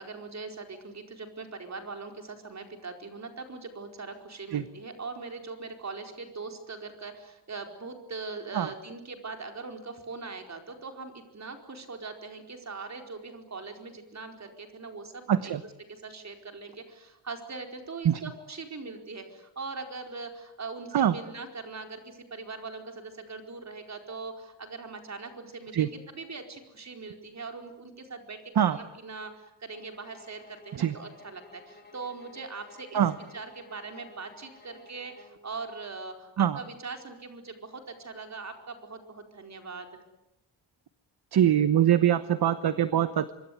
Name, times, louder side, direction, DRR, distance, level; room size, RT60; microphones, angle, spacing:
voice 1, 0.0-28.4 28.6-33.0 33.3-40.0, right 4 dB, 35° right, 5 dB, 4.6 m, -41 dB
voice 2, 15.3-15.6 18.0-18.2 20.9-21.1 25.7-25.9 28.6-28.8 30.8-30.9 32.9-33.1 36.4-36.6 41.3-43.3, right 10 dB, 60° right, 12 dB, 1.1 m, -23 dB
sound 1, 29.7-35.4, left 3 dB, 20° left, 3.5 m, -54 dB
25.5 x 23.5 x 9.5 m, 0.91 s
wide cardioid pair, 140°, 44 cm